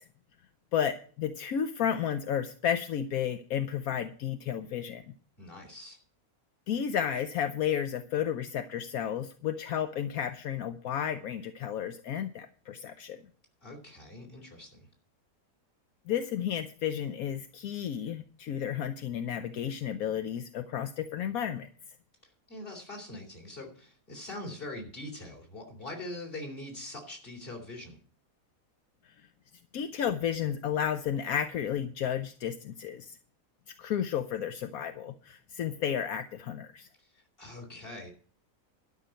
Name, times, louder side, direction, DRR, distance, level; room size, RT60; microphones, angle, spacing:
voice 1, 0.7-5.1 6.7-13.2 16.1-21.7 29.7-33.2 33.8-36.9, left 9 dB, 80° left, 8 dB, 1.2 m, -32 dB
voice 2, 5.4-6.0 13.6-14.9 22.5-28.0 37.0-38.1, left 1 dB, 40° left, 2 dB, 3.4 m, -43 dB
12.0 x 5.7 x 9.1 m, 0.43 s
omnidirectional pair, 1.5 m